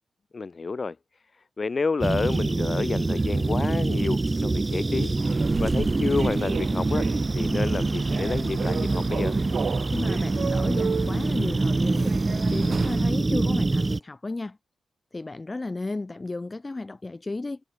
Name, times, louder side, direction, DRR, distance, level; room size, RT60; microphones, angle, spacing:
voice 1, 0.3-1.0 1.6-7.0 7.3-9.4, left 4 dB, 45° left, 2.3 m, -29 dB
sound 1, 2.0-14.0, right 2 dB, 30° right, 0.5 m, -25 dB
Human voice / Subway metro underground, 5.2-13.1, right 6 dB, 65° right, 3.2 m, -34 dB
voice 2, 9.9-14.6 15.1-17.6, left 2 dB, 30° left, 3.4 m, -33 dB
cardioid pair, 60°, 0 cm